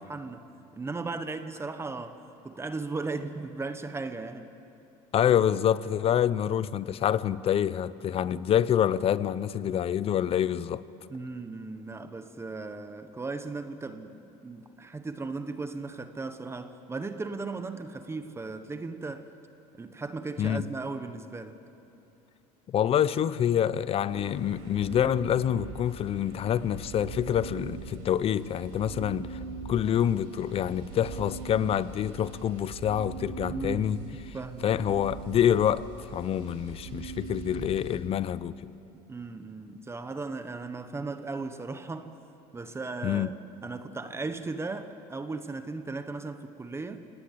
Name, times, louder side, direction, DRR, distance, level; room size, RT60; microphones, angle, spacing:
voice 1, 0.1-0.4 0.8-2.2 2.4-4.5 11.1-19.3 19.7-21.6 33.4-34.7 38.9-42.1 42.5-47.1, right 3 dB, 20° right, 1.2 m, -37 dB
voice 2, 5.1-10.8 20.4-20.6 22.7-29.3 29.7-34.0 34.6-38.6 43.0-43.3, left 10 dB, 40° left, 0.8 m, -26 dB
sound 1, 24.1-38.0, right 4 dB, 85° right, 5.0 m, -41 dB
27.5 x 18.0 x 8.9 m
cardioid pair, 110°, 14 cm